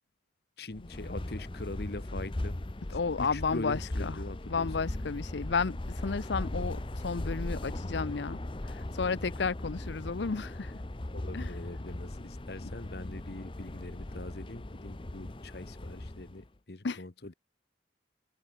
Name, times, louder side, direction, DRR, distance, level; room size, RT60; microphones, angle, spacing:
voice 1, 0.6-2.6 3.2-4.9 11.1-17.3, left 2 dB, 60° left, 1.1 m, -42 dB
sound 1, 0.7-16.5, left 1 dB, 30° left, 0.8 m, -38 dB
voice 2, 2.9-4.2 4.5-8.4 8.6-10.7 11.3-11.5 16.8-17.0, left 4 dB, 75° left, 0.6 m, -32 dB
open air
head